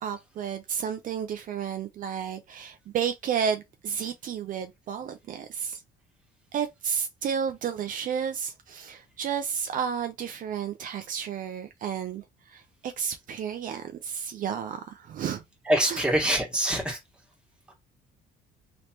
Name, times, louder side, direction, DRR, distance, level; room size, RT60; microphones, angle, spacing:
voice 1, 0.0-5.8 6.5-15.4 15.9-16.0, right 7 dB, 55° right, 0.5 m, -32 dB
voice 2, 15.6-17.0, right 1 dB, 5° right, 1.6 m, -24 dB
3.2 x 2.9 x 2.9 m
cardioid pair, 110°, 17 cm